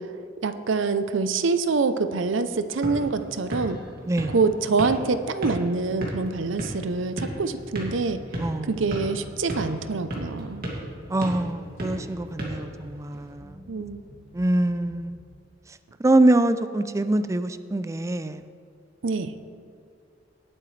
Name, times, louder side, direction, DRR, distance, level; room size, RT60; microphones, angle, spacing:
voice 1, 0.4-3.8 4.3-8.2 8.6-10.7 13.7-14.0 19.0-19.3, right 4 dB, 75° right, 10 dB, 0.6 m, -25 dB
sound 1, 2.5-13.3, right 1 dB, 50° right, 2.4 m, -36 dB
sound 2, 7.3-15.3, equal, 85° left, 3.0 m, -49 dB
voice 2, 8.4-8.7 11.1-13.5 14.3-15.2 16.0-18.4, right 1 dB, 15° right, 12 dB, 0.4 m, -24 dB
18.5 x 8.8 x 3.3 m, 2.5 s
head